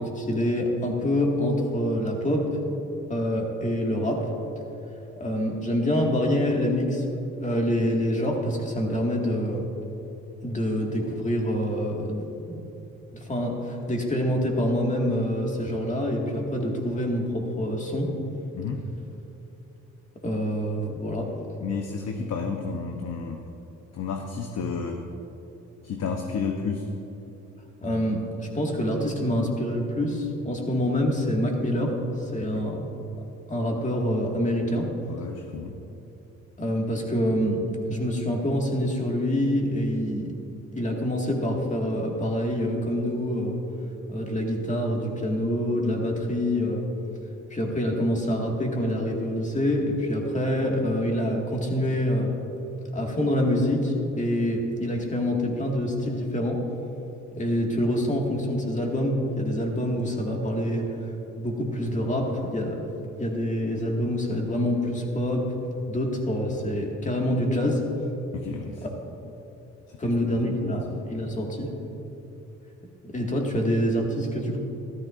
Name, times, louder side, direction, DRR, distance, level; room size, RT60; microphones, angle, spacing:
voice 1, 0.0-2.5 3.1-4.3 5.2-7.0 7.4-9.7 10.4-12.2 12.5-12.6 13.1-18.1 20.2-21.3 27.8-32.9 33.5-34.9 36.6-40.3 40.7-43.6 44.1-46.9 47.5-52.4 52.9-56.6 57.4-60.9 61.4-62.8 63.2-65.5 65.9-67.8 70.0-71.7 73.1-74.6, equal, 25° left, 0 dB, 2.0 m, -26 dB
voice 2, 18.5-18.8 21.6-23.4 23.9-25.0 25.8-26.9 32.4-32.7 35.1-35.8 68.3-68.8 69.9-70.8, left 5 dB, 60° left, 3 dB, 0.9 m, -32 dB
13.5 x 13.0 x 2.6 m, 3.0 s
cardioid pair, 90°, 30 cm